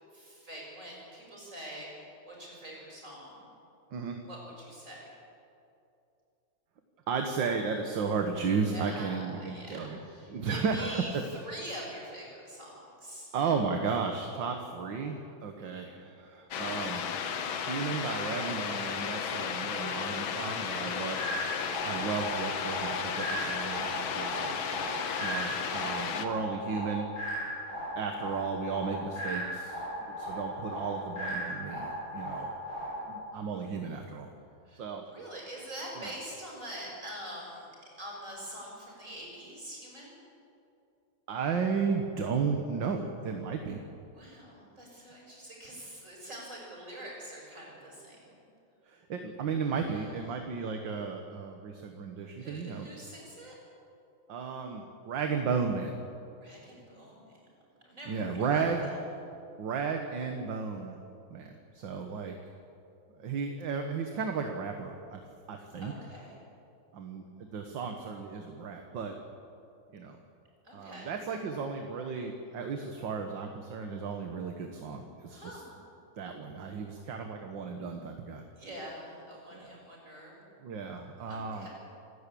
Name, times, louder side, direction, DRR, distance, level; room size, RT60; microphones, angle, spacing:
voice 1, 0.1-3.5 4.2-5.1 8.7-13.3 15.6-16.1 20.8-21.1 34.6-37.7 38.0-40.2 44.1-48.4 49.9-50.4 52.4-53.5 56.4-57.4 57.8-59.0 65.8-66.4 70.6-71.1 75.3-75.7 78.5-80.4 81.3-81.7, right 1 dB, 35° right, -3 dB, 6.8 m, -45 dB
voice 2, 7.1-10.0 10.3-11.2 13.3-17.0 17.6-21.3 21.8-24.6 25.2-27.1 28.0-32.5 33.1-34.3 34.7-35.0 36.0-36.1 41.3-43.8 48.9-52.9 54.3-56.0 58.1-58.9 59.6-61.0 61.3-62.4 63.2-65.2 65.5-65.9 66.9-69.2 69.9-70.2 70.7-75.6 76.2-78.4 79.5-79.7 80.6-81.7, right 5 dB, 60° right, 4 dB, 1.9 m, -34 dB
sound 1, 16.5-26.3, left 7 dB, 70° left, 1.9 m, -34 dB
sound 2, 21.2-33.2, equal, 40° left, 7.7 m, -37 dB
27.5 x 12.5 x 8.5 m, 2.6 s
omnidirectional pair, 2.3 m